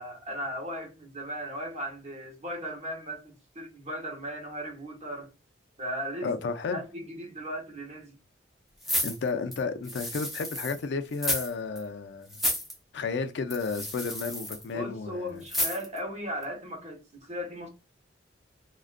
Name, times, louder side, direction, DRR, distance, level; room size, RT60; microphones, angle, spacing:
voice 1, 0.0-5.3 5.8-6.3 6.7-8.2 14.7-17.7, equal, 35° right, 1.0 m, -37 dB
voice 2, 6.2-6.8 8.9-12.3 12.9-15.4, left 4 dB, 65° left, 0.4 m, -32 dB
sound 1, 8.8-10.8 11.1-11.5 11.8-11.9 12.3-12.7 13.5-14.6 15.5-16.0 16.4-16.5, left 1 dB, ahead, 0.6 m, -31 dB
2.4 x 2.2 x 2.4 m
head